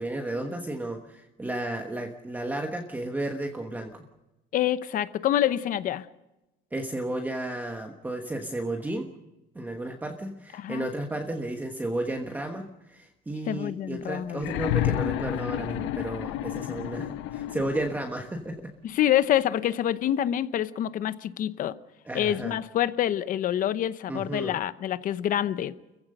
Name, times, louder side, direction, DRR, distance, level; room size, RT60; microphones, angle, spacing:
voice 1, 0.0-4.1 6.7-9.1 9.5-18.7 22.0-22.6 24.1-24.5, right 1 dB, 10° right, 1.2 m, -33 dB
voice 2, 4.5-6.1 10.6-10.9 13.5-14.5 18.8-21.8 22.1-25.7, left 11 dB, 45° left, 0.8 m, -26 dB
sound 1, 14.4-18.2 19.4-19.5, left 13 dB, 75° left, 1.0 m, -30 dB
29.5 x 15.5 x 6.6 m
cardioid pair, 175°, 20 cm